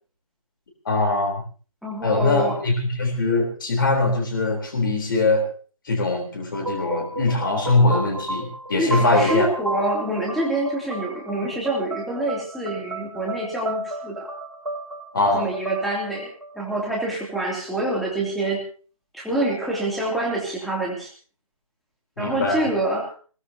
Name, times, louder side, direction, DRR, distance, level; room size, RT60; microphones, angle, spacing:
voice 1, 0.9-1.3 2.0-5.4 5.9-9.5 15.1-15.5 22.2-22.6, left 2 dB, 40° left, 2 dB, 3.8 m, -22 dB
voice 2, 1.8-2.6 8.8-14.3 15.3-16.3 16.5-18.6 19.1-21.1 22.2-23.1, right 1 dB, ahead, -4 dB, 2.8 m, -26 dB
sound 1, 6.5-17.2, right 1 dB, 70° right, 5.4 m, -32 dB
21.0 x 19.0 x 2.9 m, 0.40 s
figure-of-eight pair, 155°, 18 cm